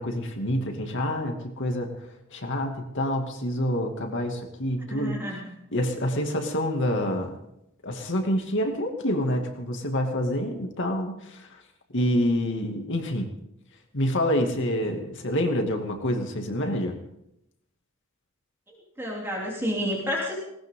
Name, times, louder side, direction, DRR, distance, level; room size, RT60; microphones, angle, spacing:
voice 1, 0.0-1.9 2.3-5.2 5.7-7.4 7.8-11.6 11.9-13.3 13.9-17.0, equal, 60° left, 3 dB, 2.4 m, -27 dB
voice 2, 4.9-5.4 18.7-20.3, equal, 10° right, -4 dB, 3.4 m, -30 dB
19.5 x 18.5 x 3.8 m, 0.81 s
head